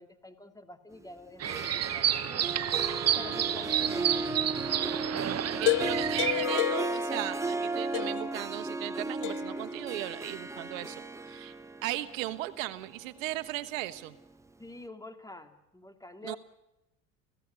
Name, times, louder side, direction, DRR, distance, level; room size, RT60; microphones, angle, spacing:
voice 1, 0.0-2.5 3.2-4.5 14.6-16.4, left 2 dB, 10° left, 8 dB, 2.6 m, -47 dB
Harp, 1.3-14.2, right 2 dB, 5° right, 1.2 m, -36 dB
sound 1, 1.4-6.5, right 10 dB, 40° right, 1.1 m, -30 dB
voice 2, 5.3-11.5 11.8-14.1 16.2-16.4, right 16 dB, 80° right, 10 dB, 1.3 m, -37 dB
sound 2, 5.6-7.7 7.9-8.4 9.2-9.7, left 16 dB, 50° left, 0.8 m, -31 dB
29.5 x 16.0 x 8.2 m, 0.95 s
hypercardioid pair, 75°, 39 cm